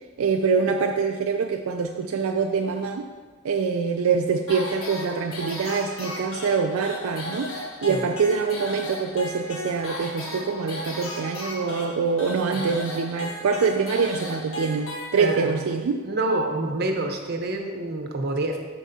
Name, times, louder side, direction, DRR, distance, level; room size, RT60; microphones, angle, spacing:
voice 1, 0.2-3.1 3.4-7.5 7.8-16.0, right 5 dB, 75° right, 4 dB, 0.4 m, -25 dB
sound 1, 4.5-15.6, left 1 dB, 80° left, 1.4 m, -35 dB
voice 2, 15.1-15.5 16.0-18.6, right 2 dB, 50° right, 2 dB, 0.9 m, -27 dB
13.5 x 4.6 x 2.7 m, 1.4 s
head